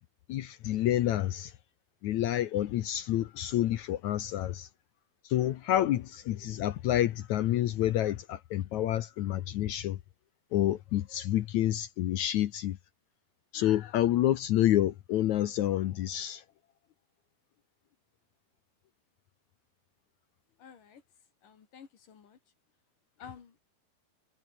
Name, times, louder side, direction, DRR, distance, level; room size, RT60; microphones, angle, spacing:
voice 1, 0.3-1.5 2.0-4.7 5.3-10.0 10.5-12.8 13.5-16.4, left 13 dB, 80° left, 1.7 m, -28 dB
voice 2, 20.6-21.0 21.4-22.4 23.2-23.6, left 7 dB, 55° left, 4.3 m, -51 dB
omnidirectional pair, 4.7 m